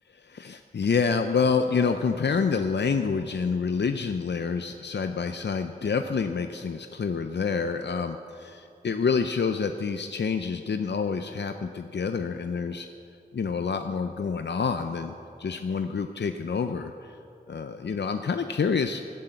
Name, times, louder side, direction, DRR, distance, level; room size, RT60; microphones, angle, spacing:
voice 1, 0.3-12.9 13.3-17.2 17.5-19.0, left 5 dB, 85° left, 7 dB, 0.5 m, -27 dB
12.0 x 11.0 x 7.9 m, 2.5 s
wide cardioid pair, 45°, 17 cm